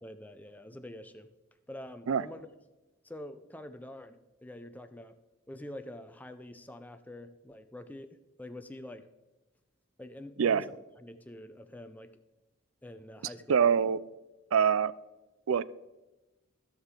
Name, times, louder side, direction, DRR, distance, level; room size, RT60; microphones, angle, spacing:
voice 1, 0.0-1.3 1.7-2.5 3.0-5.2 5.5-9.1 10.0-10.7 11.0-12.2 12.8-13.7, left 1 dB, 10° left, 8 dB, 0.4 m, -46 dB
voice 2, 13.5-14.0 14.5-14.9 15.5-15.6, right 7 dB, 70° right, 18 dB, 0.4 m, -24 dB
16.0 x 6.3 x 3.7 m, 1.1 s
head